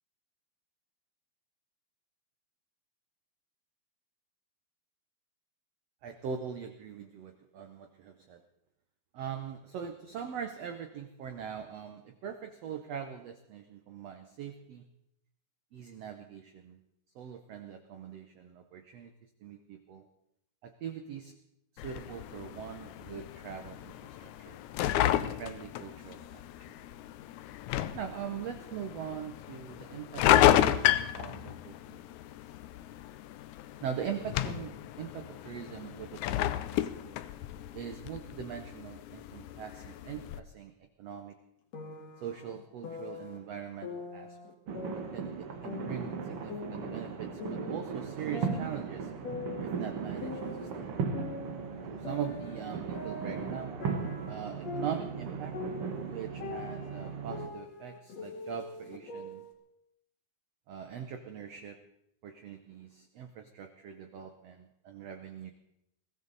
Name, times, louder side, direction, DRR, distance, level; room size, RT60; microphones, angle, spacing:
voice 1, 6.0-8.4 9.1-14.8 15.7-16.8 17.1-19.1 19.4-20.1 20.6-21.4 21.7-24.6 25.1-26.4 27.9-32.1 33.8-36.9 37.7-40.7 41.0-41.4 42.2-44.4 45.1-49.1 49.6-51.0 51.9-53.8 54.3-55.5 56.1-59.5 60.7-61.8 62.2-65.5, right 8 dB, 85° right, 7 dB, 1.4 m, -42 dB
sound 1, 21.8-40.4, left 12 dB, 90° left, 1.6 m, -32 dB
sound 2, 41.7-43.4 43.8-45.4 45.7-47.9 48.3-50.8 51.1-55.2 55.5-59.5, left 4 dB, 50° left, 2.8 m, -43 dB
sound 3, 44.7-57.5, right 6 dB, 55° right, 1.7 m, -37 dB
22.0 x 16.0 x 4.0 m, 0.80 s
omnidirectional pair, 4.2 m